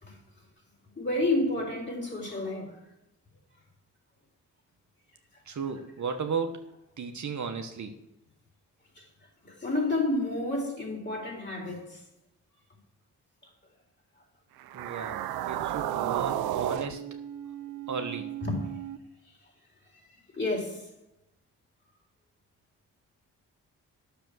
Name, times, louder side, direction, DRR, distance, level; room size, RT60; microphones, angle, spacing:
voice 1, 1.0-2.8 9.0-9.1 9.4-12.0 18.4-18.6 20.4-20.8, left 2 dB, 30° left, 4.2 m, -30 dB
voice 2, 5.5-6.7 7.0-7.9 14.7-15.2 15.5-17.1 17.9-18.3, right 5 dB, 55° right, 1.2 m, -34 dB
sound 1, 14.6-19.0, right 12 dB, 90° right, 0.6 m, -33 dB
10.0 x 6.9 x 6.3 m
supercardioid pair, 55°, 35 cm